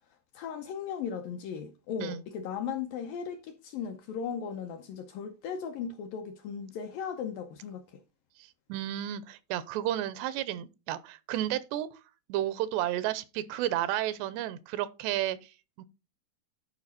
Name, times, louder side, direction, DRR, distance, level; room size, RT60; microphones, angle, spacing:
voice 1, 0.3-8.0, left 7 dB, 75° left, 2.1 m, -37 dB
voice 2, 8.7-11.9 12.3-15.5 15.8-15.9, right 13 dB, 90° right, 2.8 m, -32 dB
11.5 x 5.3 x 4.1 m
omnidirectional pair, 4.8 m